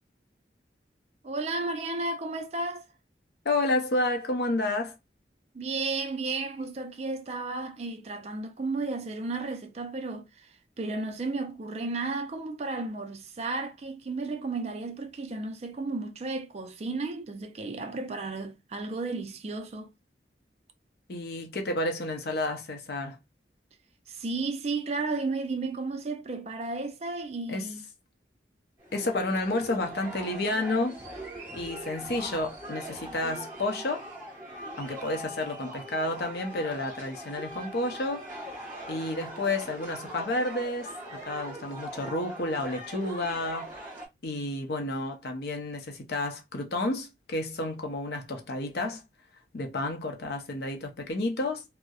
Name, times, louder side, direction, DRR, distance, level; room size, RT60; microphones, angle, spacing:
voice 1, 1.2-2.8 5.5-10.5 10.8-19.9 24.1-27.8, right 3 dB, 35° right, 0.4 m, -33 dB
voice 2, 3.4-4.9 21.1-23.2 27.5-27.7 28.9-31.0 31.5-34.0 34.8-38.3 38.9-43.8 44.2-49.0 49.5-51.6, left 2 dB, 60° left, 0.6 m, -30 dB
sound 1, 28.8-44.1, right 1 dB, 15° right, 1.2 m, -41 dB
2.7 x 2.0 x 2.3 m
head